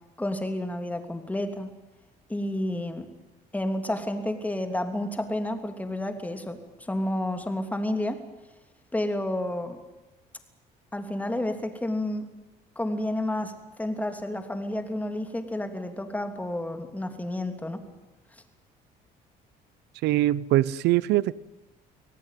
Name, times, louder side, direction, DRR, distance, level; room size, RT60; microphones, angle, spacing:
voice 1, 0.2-1.7 2.3-3.1 3.5-8.2 8.9-9.8 10.9-12.3 12.7-17.8, left 1 dB, 10° left, 6 dB, 3.1 m, -30 dB
voice 2, 20.0-21.3, right 15 dB, 85° right, 20 dB, 0.8 m, -22 dB
24.5 x 17.5 x 9.3 m, 1.1 s
cardioid pair, 110°, 17 cm